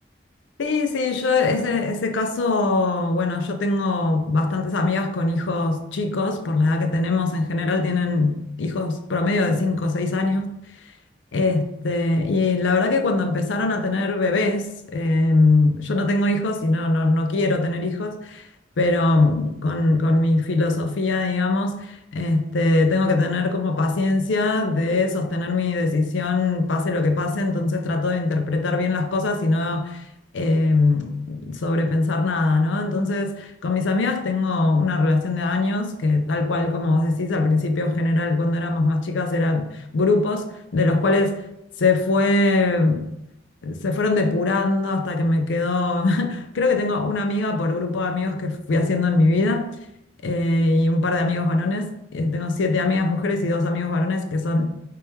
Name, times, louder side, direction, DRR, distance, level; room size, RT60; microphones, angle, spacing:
voice 1, 0.6-10.6 11.3-18.5 18.8-30.0 30.3-41.4 41.8-43.1 43.6-49.7 50.2-54.7, left 2 dB, 90° left, 0.5 m, -22 dB
3.4 x 3.3 x 2.8 m
head